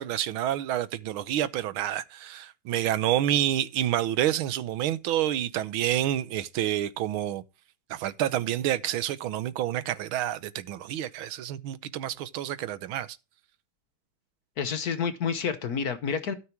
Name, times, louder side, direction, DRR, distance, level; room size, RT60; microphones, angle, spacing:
voice 1, 0.0-7.4 7.9-13.2, right 12 dB, 80° right, 1.7 m, -28 dB
voice 2, 14.6-16.3, left 6 dB, 55° left, 1.3 m, -29 dB
13.0 x 5.9 x 4.6 m
omnidirectional pair, 2.2 m